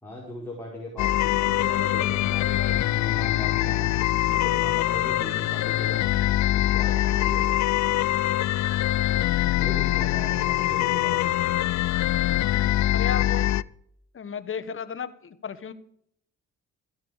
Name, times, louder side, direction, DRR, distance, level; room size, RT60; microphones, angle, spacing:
voice 1, 0.0-3.9 4.3-6.0 6.5-7.6 9.6-11.3, left 1 dB, 5° left, -5 dB, 4.8 m, -39 dB
sound 1, 1.0-13.6, left 14 dB, 65° left, 0.5 m, -23 dB
voice 2, 12.9-13.6 14.1-15.7, left 7 dB, 45° left, 11 dB, 1.5 m, -33 dB
14.5 x 10.5 x 4.9 m, 0.67 s
cardioid pair, 90°, 30 cm